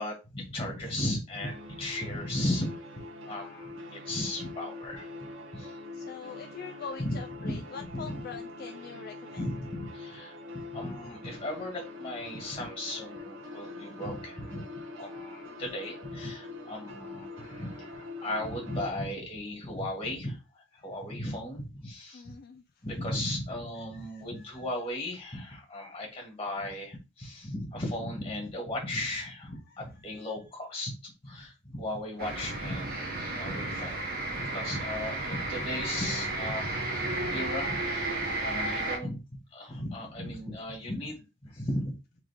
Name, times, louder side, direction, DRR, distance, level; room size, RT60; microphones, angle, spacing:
voice 1, 0.0-2.7 3.3-5.1 5.5-5.7 7.0-7.2 7.4-8.2 9.4-10.3 10.7-14.6 15.0-20.4 20.8-22.2 22.8-34.0 34.4-39.2 39.5-41.9, left 1 dB, 30° left, 0 dB, 1.9 m, -36 dB
sound 1, 1.4-18.9, left 2 dB, 85° right, 1.0 m, -44 dB
voice 2, 5.9-9.5 13.5-13.9 22.1-22.8 23.9-24.5, left 5 dB, 50° left, 6 dB, 0.3 m, -44 dB
sound 2, 32.2-39.0, right 2 dB, 50° right, 1.1 m, -33 dB
3.6 x 3.0 x 3.5 m, 0.28 s
head